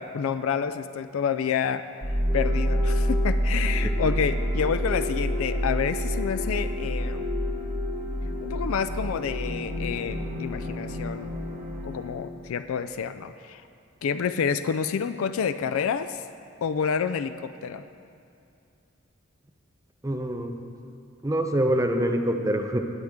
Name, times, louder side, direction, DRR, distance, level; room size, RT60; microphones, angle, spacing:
voice 1, 0.0-7.4 8.4-11.4 11.8-13.6 14.0-16.2 16.6-17.8, left 6 dB, 75° left, 11 dB, 0.4 m, -29 dB
sound 1, 2.0-12.1, equal, 35° right, 1.4 m, -28 dB
voice 2, 20.0-20.6 21.2-22.8, right 1 dB, 15° right, 4 dB, 0.6 m, -25 dB
19.0 x 7.8 x 3.6 m, 2.5 s
head